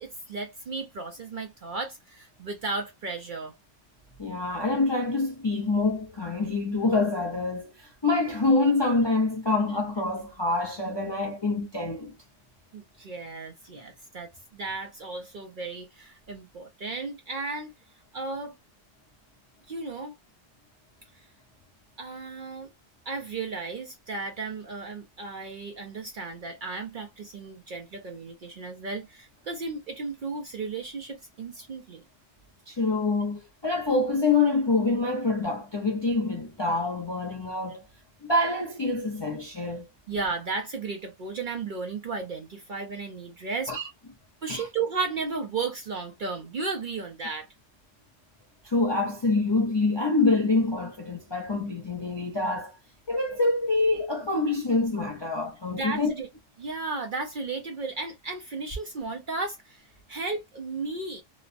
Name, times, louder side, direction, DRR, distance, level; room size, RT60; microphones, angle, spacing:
voice 1, 0.0-3.5 12.7-17.7 18.1-18.5 19.7-20.1 21.1-21.3 22.0-22.7 23.1-32.0 40.1-43.7 44.4-47.5 55.7-56.3 56.6-61.2, right 4 dB, 55° right, 0.6 m, -34 dB
voice 2, 4.2-12.1 32.7-37.8 38.2-39.9 43.7-43.9 44.5-44.7 48.6-52.8 53.1-56.1, left 3 dB, 35° left, 0.4 m, -26 dB
3.0 x 2.1 x 2.4 m
omnidirectional pair, 1.3 m